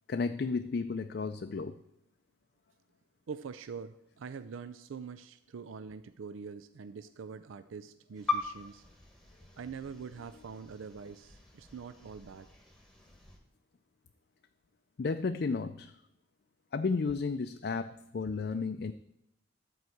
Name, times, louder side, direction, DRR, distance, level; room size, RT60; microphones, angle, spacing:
voice 1, 0.1-1.8 15.0-15.9 16.7-18.9, left 4 dB, 50° left, 8 dB, 0.4 m, -33 dB
voice 2, 3.3-8.8 9.6-12.5, right 5 dB, 85° right, 12 dB, 0.4 m, -44 dB
sound 1, 8.1-13.4, left 4 dB, ahead, 1.3 m, -41 dB
12.5 x 4.7 x 7.8 m, 0.82 s
head